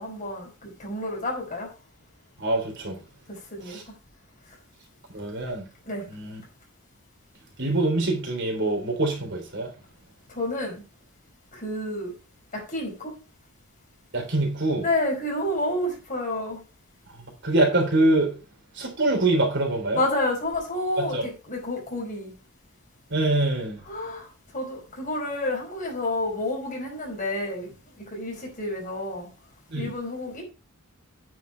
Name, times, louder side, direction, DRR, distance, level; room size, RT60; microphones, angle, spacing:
voice 1, 0.0-1.7 3.3-3.8 5.8-6.0 10.3-10.8 11.5-12.1 12.5-13.1 14.8-16.6 19.9-22.3 23.9-24.3 24.5-29.3 29.7-30.4, left 1 dB, 40° left, 4.9 m, -30 dB
voice 2, 2.4-3.0 3.7-3.8 5.1-5.7 6.1-6.4 7.6-9.7 14.1-14.9 17.1-18.4 18.7-20.0 21.0-21.3 23.1-23.8 29.7-29.9, right 2 dB, 60° right, 3.5 m, -24 dB
9.4 x 6.2 x 5.2 m
head